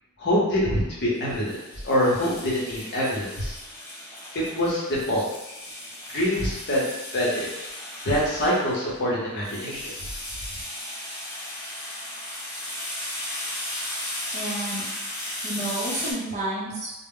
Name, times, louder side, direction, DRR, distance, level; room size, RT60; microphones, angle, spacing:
voice 1, 0.2-1.6 1.8-3.5 4.3-5.3 6.1-6.8 7.1-7.5 8.0-9.9, equal, 50° left, -6 dB, 0.8 m, -25 dB
sound 1, 1.3-16.1, left 1 dB, 10° left, 0.5 m, -36 dB
voice 2, 14.3-14.9 15.4-16.9, right 1 dB, 35° right, -5 dB, 0.6 m, -30 dB
2.1 x 2.0 x 3.6 m, 1.0 s
head